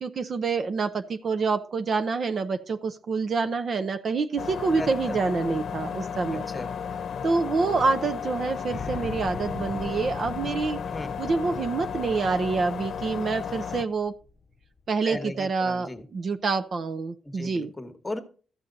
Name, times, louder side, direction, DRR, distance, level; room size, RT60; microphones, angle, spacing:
voice 1, 0.0-6.5 7.2-10.8 11.2-14.1 14.9-17.7, right 4 dB, 50° right, 8 dB, 0.6 m, -27 dB
sound 1, 4.4-13.9, left 7 dB, 65° left, 0.8 m, -34 dB
voice 2, 4.8-5.2 6.3-6.7 10.9-11.1 15.0-16.0 17.2-18.2, left 1 dB, 15° left, 7 dB, 1.2 m, -36 dB
sound 2, 8.7-14.8, left 4 dB, 35° left, 0.8 m, -42 dB
13.5 x 7.2 x 4.0 m, 0.41 s
wide cardioid pair, 125°, 0 cm